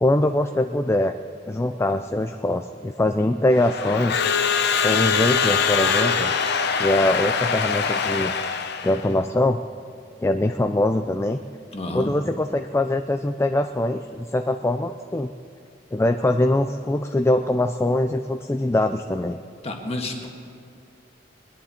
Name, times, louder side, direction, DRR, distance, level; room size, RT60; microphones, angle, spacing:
voice 1, 0.0-1.2 1.5-4.2 4.8-6.3 6.8-8.3 8.8-9.6 10.2-11.4 11.9-15.3 15.9-19.4, left 1 dB, 15° left, 7 dB, 0.3 m, -22 dB
Crowd / Alarm, 3.5-9.1, left 6 dB, 60° left, 0.8 m, -23 dB
voice 2, 11.7-12.1 19.6-20.3, left 2 dB, 35° left, 2 dB, 1.6 m, -30 dB
21.0 x 10.5 x 4.3 m, 2.5 s
head